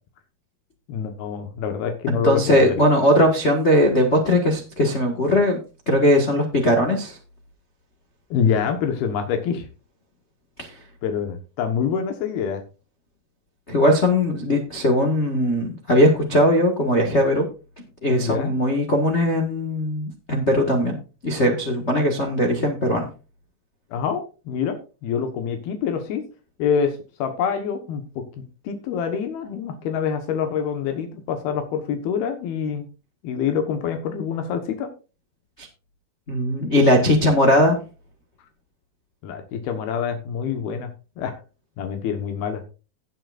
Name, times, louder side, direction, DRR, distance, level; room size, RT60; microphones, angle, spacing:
voice 1, 0.9-2.8 8.3-9.7 11.0-12.6 18.2-18.5 23.9-24.8 25.0-26.2 26.6-32.9 33.2-34.9 39.2-40.9 41.2-41.3 41.8-42.6, left 7 dB, 80° left, 6 dB, 3.2 m, -26 dB
voice 2, 2.1-5.6 5.9-7.2 10.6-10.7 13.7-17.4 18.0-21.0 21.2-23.1 35.6-35.7 36.3-37.8, left 1 dB, 55° left, 1 dB, 0.7 m, -19 dB
17.0 x 7.7 x 2.5 m, 0.33 s
omnidirectional pair, 4.4 m